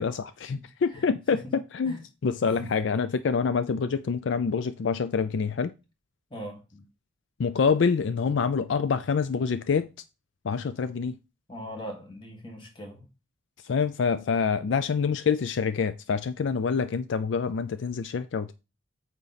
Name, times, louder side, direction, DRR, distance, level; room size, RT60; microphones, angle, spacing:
voice 1, 0.0-5.7 7.4-9.9 10.4-11.2 13.6-18.5, left 5 dB, 70° left, 0.4 m, -26 dB
voice 2, 0.9-1.5 1.8-2.0 2.4-2.7 6.3-6.9 11.5-13.1, equal, 25° left, 1.7 m, -41 dB
8.7 x 4.1 x 4.2 m
head